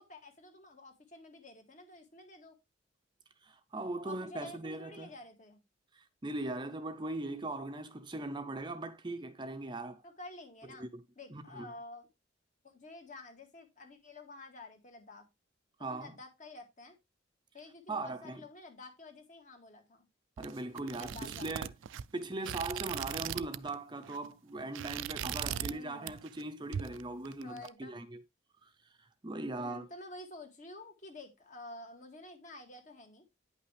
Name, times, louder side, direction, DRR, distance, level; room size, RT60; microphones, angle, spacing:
voice 1, 0.0-2.6 4.0-5.6 10.0-10.9 11.2-12.1 12.6-15.3 15.8-17.0 17.5-20.1 20.9-21.7 25.4-26.1 27.4-28.0 29.5-33.3, left 2 dB, 40° left, 1.9 m, -50 dB
voice 2, 3.4-5.1 5.9-10.0 10.8-11.0 11.3-11.7 15.8-16.1 17.9-18.4 20.4-21.7 22.1-28.2 28.6-28.7 29.0-29.9, right 2 dB, 25° right, 0.6 m, -40 dB
sound 1, 20.4-23.7 24.0-24.3 24.6-25.8 26.1-26.4 26.7-27.7, right 9 dB, 80° right, 0.4 m, -39 dB
9.4 x 5.7 x 3.3 m
head